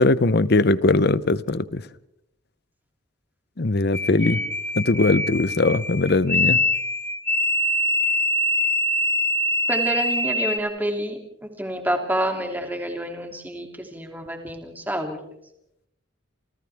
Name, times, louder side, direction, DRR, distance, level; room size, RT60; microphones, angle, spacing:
voice 1, 0.0-1.8 3.6-4.4 4.8-6.6, left 2 dB, 50° left, 0.8 m, -20 dB
sound 1, 3.9-10.6, left 1 dB, 10° left, 1.3 m, -24 dB
voice 2, 9.7-15.2, right 1 dB, 10° right, 2.8 m, -28 dB
29.0 x 29.0 x 3.5 m
head